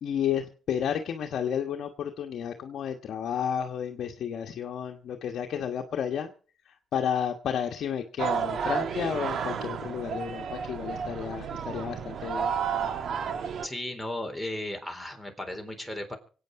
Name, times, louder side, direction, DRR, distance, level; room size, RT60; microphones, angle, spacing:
voice 1, 0.0-6.3 6.6-12.5, left 8 dB, 65° left, 3 dB, 1.3 m, -32 dB
sound 1, 8.2-13.7, right 7 dB, 60° right, 1.4 m, -31 dB
voice 2, 13.6-16.2, left 1 dB, ahead, 3 dB, 3.8 m, -35 dB
24.5 x 8.9 x 4.8 m, 0.39 s
cardioid pair, 90°, 0 cm